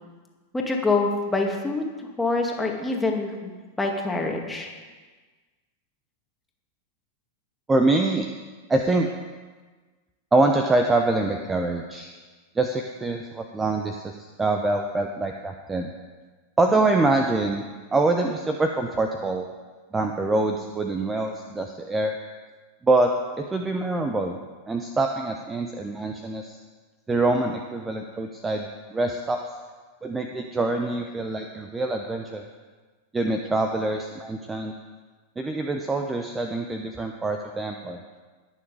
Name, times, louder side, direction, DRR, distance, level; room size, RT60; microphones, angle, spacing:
voice 1, 0.5-3.5 3.8-4.7, left 3 dB, 10° left, 1 dB, 2.2 m, -25 dB
voice 2, 7.7-8.3 8.7-9.1 10.3-12.1 12.5-15.9 16.6-19.5 19.9-22.2 22.8-24.4 24.7-26.6 27.1-29.5 30.0-32.4 33.1-34.7 35.4-38.0, right 2 dB, 15° right, 4 dB, 0.9 m, -25 dB
21.0 x 7.2 x 4.9 m, 1.3 s
figure-of-eight pair, 90°, 0 cm